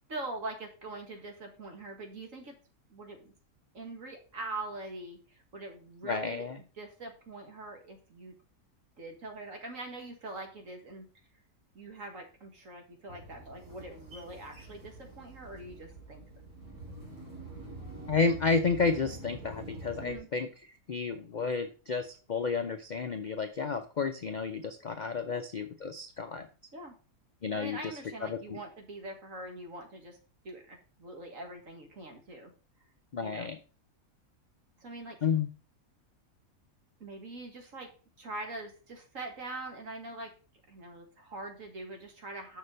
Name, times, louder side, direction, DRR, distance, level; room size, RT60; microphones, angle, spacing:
voice 1, 0.0-2.5 2.9-3.3 3.7-6.5 6.8-8.4 9.0-11.1 11.7-16.2 20.0-20.3 25.3-25.4 26.7-27.0 27.5-30.2 30.4-32.5 33.2-33.5 34.8-35.2 37.0-37.9 38.2-40.3 40.7-42.6, right 2 dB, 60° right, 3 dB, 2.1 m, -43 dB
voice 2, 6.0-6.6 18.1-20.5 20.9-26.5 27.4-27.8 28.2-28.6 33.1-33.6 35.2-35.5, left 4 dB, 55° left, 7 dB, 0.5 m, -31 dB
sound 1, 13.1-20.2, right 2 dB, 85° right, 3.6 m, -46 dB
6.5 x 5.8 x 5.2 m, 0.36 s
omnidirectional pair, 1.6 m